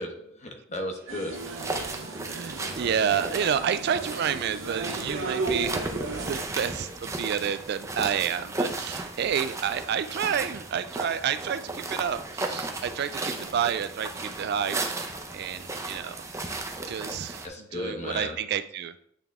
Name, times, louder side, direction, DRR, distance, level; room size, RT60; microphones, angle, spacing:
voice 1, 0.0-1.5 17.4-18.4, left 1 dB, 35° left, 3 dB, 1.0 m, -35 dB
sound 1, 1.1-6.4, right 3 dB, 85° right, 0.9 m, -35 dB
sound 2, 1.3-17.5, right 2 dB, 15° right, 0.6 m, -35 dB
voice 2, 1.9-15.0 15.3-17.5 17.7-19.0, right 8 dB, 55° right, 12 dB, 0.3 m, -30 dB
9.0 x 3.5 x 3.5 m, 0.67 s
head